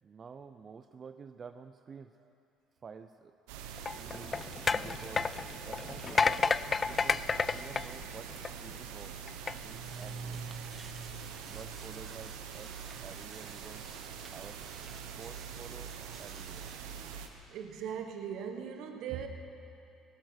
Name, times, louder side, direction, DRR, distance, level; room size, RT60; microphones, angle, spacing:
voice 1, 0.0-2.2 2.8-3.4 3.9-9.2 9.6-10.4 11.5-13.9 14.3-14.6 15.2-16.7, right 6 dB, 40° right, 8 dB, 0.5 m, -50 dB
sound 1, 3.5-17.3, right 7 dB, 90° right, 1.1 m, -44 dB
sound 2, 3.8-8.7 9.3-9.5, left 5 dB, 30° left, 0.3 m, -31 dB
sound 3, 9.4-17.0, right 3 dB, 25° right, 1.1 m, -50 dB
voice 2, 17.5-19.3, right 8 dB, 70° right, 5 dB, 1.4 m, -39 dB
18.5 x 12.0 x 6.4 m, 2.7 s
supercardioid pair, 80°, 0 cm